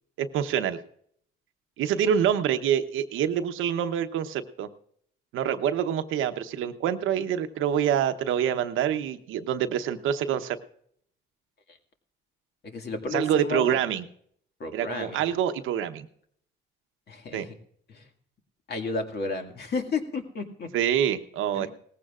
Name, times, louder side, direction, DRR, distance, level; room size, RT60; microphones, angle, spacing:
voice 1, 0.2-0.8 1.8-4.7 5.3-10.6 13.1-14.0 14.7-16.1 17.3-17.5 20.7-21.7, right 9 dB, 85° right, 9 dB, 0.9 m, -26 dB
voice 2, 12.6-13.8 14.6-15.2 17.1-17.6 17.9-18.1 18.7-20.7 21.5-21.7, left 4 dB, 55° left, 4 dB, 2.0 m, -32 dB
18.5 x 15.0 x 2.5 m, 0.64 s
cardioid pair, 90°, 20 cm